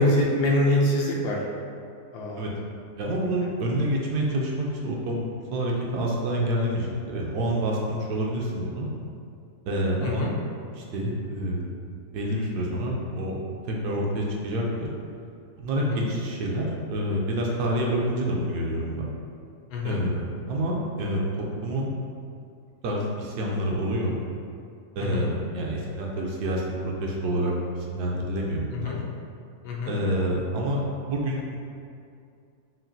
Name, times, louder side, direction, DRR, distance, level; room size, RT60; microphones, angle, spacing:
voice 1, 0.0-1.4 2.1-2.4 10.0-10.3 15.9-16.0 19.7-20.0 25.0-25.3 28.7-29.0 29.6-29.9, left 1 dB, 75° left, -2 dB, 1.2 m, -24 dB
voice 2, 3.0-5.2 5.5-8.9 9.7-10.2 10.7-11.6 12.1-13.4 13.7-14.7 15.6-19.1 19.8-21.9 22.8-24.2 25.0-27.5 27.9-28.9 29.9-31.6, right 1 dB, 75° right, -2 dB, 1.1 m, -27 dB
5.7 x 2.5 x 2.7 m, 2.4 s
omnidirectional pair, 1.8 m